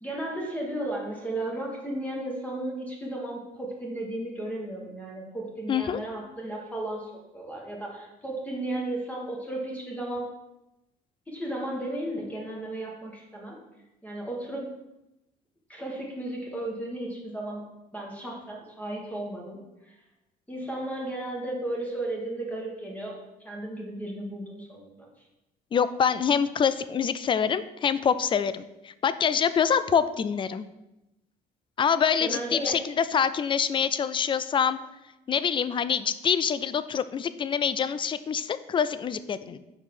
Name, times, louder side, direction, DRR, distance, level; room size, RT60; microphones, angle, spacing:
voice 1, 0.0-10.3 11.3-13.6 14.0-14.7 15.7-17.6 17.9-20.0 20.5-23.2 23.4-25.1 32.2-32.8, right 1 dB, 10° left, -2 dB, 1.7 m, -34 dB
voice 2, 5.7-6.0 25.7-30.6 31.8-34.8 35.3-39.6, left 7 dB, 30° left, 14 dB, 0.4 m, -25 dB
5.4 x 4.6 x 6.1 m, 0.95 s
cardioid pair, 110°, 17 cm